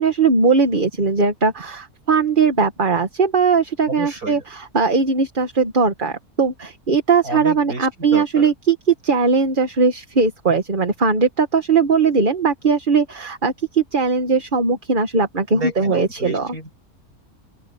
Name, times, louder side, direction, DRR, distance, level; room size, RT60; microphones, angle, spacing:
voice 1, 0.0-8.8 9.0-16.5, right 4 dB, 35° right, 1.6 m, -19 dB
voice 2, 3.9-4.4 7.2-8.5 15.5-16.7, right 2 dB, 80° right, 7.9 m, -31 dB
open air
omnidirectional pair, 1.5 m